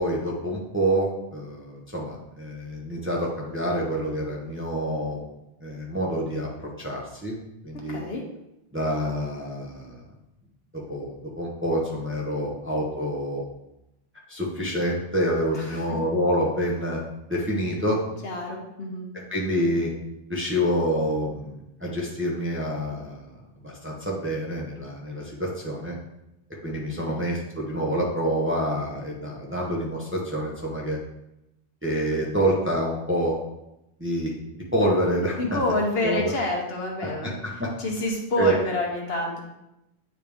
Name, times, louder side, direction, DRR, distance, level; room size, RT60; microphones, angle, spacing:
voice 1, 0.0-5.2 5.6-6.5 6.8-7.4 7.6-8.0 8.7-10.0 10.7-13.4 14.3-17.0 17.3-18.0 19.3-19.9 20.3-26.0 26.6-31.0 31.8-33.3 34.0-35.6 36.0-36.3 37.0-37.7 38.4-38.6, equal, 10° right, -4 dB, 0.9 m, -27 dB
voice 2, 7.9-8.2 15.5-16.0 18.2-19.1 26.9-27.2 35.4-37.4 37.8-39.4, left 2 dB, 60° left, 0 dB, 1.2 m, -28 dB
8.8 x 3.2 x 3.5 m, 0.88 s
omnidirectional pair, 1.2 m